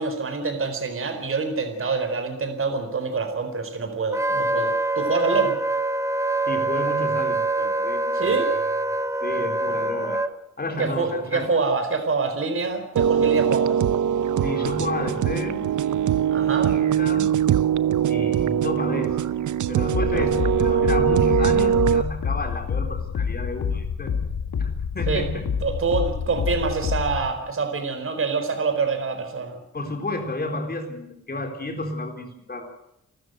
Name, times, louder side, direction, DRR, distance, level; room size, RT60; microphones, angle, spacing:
voice 1, 0.0-5.5 8.1-8.6 10.8-13.8 16.3-16.8 20.1-20.3 25.1-25.3 25.6-29.6, right 4 dB, 45° right, 7 dB, 4.3 m, -26 dB
Wind instrument woodwind instrument, 4.1-10.3, right 2 dB, 10° right, 0.9 m, -25 dB
voice 2, 6.5-8.5 9.2-10.2 10.6-11.5 14.4-15.7 16.7-17.3 18.1-19.2 19.7-24.1 24.6-25.5 29.7-32.7, left 2 dB, 30° left, 4 dB, 4.2 m, -31 dB
sound 1, 13.0-22.0, right 9 dB, 80° right, 0.8 m, -22 dB
sound 2, 19.9-27.3, left 6 dB, 75° left, 2.6 m, -28 dB
29.5 x 13.5 x 7.9 m, 0.80 s
wide cardioid pair, 150°, 30 cm